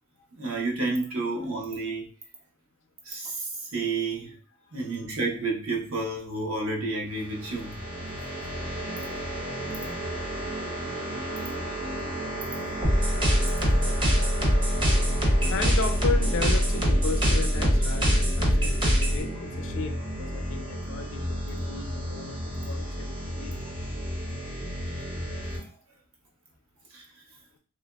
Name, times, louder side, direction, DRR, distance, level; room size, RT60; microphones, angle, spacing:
voice 1, 0.4-2.1 3.0-4.4 4.7-7.8 8.1-8.2 25.6-25.7 26.9-27.1, right 3 dB, 60° right, 0.7 m, -30 dB
sound 1, 7.1-25.6, equal, 90° right, 1.1 m, -33 dB
sound 2, 12.8-19.2, equal, 20° right, 0.6 m, -23 dB
voice 2, 14.4-14.9 15.4-23.9 24.9-25.1, left 4 dB, 60° left, 0.4 m, -36 dB
2.8 x 2.5 x 2.3 m
head